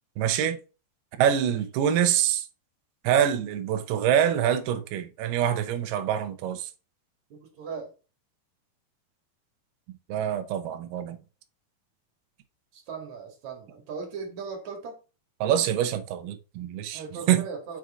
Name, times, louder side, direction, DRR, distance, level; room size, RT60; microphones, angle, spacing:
voice 1, 0.2-0.6 1.2-2.4 3.0-6.7 10.1-11.2 15.4-17.0 17.3-17.4, right 9 dB, 80° right, 2.9 m, -25 dB
voice 2, 7.3-7.9 12.7-15.0 16.9-17.8, right 5 dB, 50° right, 2.9 m, -38 dB
6.4 x 5.9 x 3.7 m
omnidirectional pair, 4.5 m